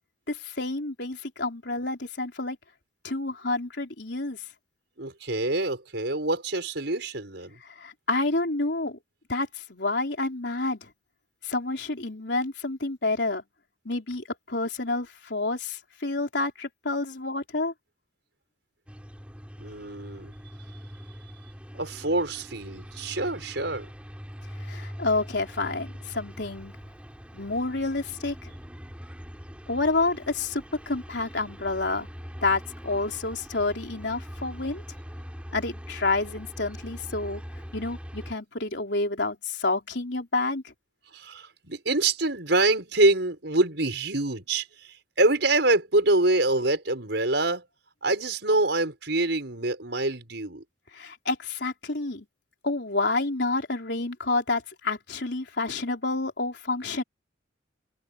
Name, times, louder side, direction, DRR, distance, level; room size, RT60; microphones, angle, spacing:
voice 1, 0.3-2.6 3.0-4.4 7.6-9.0 9.3-10.9 11.4-13.4 13.9-17.7 24.6-26.8 27.3-28.5 29.7-32.1 32.4-34.8 35.5-37.4 37.7-40.7 51.0-52.3 52.6-57.0, left 3 dB, 65° left, 3.9 m, -29 dB
voice 2, 5.0-7.6 19.6-20.3 21.7-23.9 41.1-47.6 48.0-50.6, right 2 dB, 70° right, 5.3 m, -25 dB
sound 1, 18.9-38.3, equal, 5° right, 8.0 m, -42 dB
head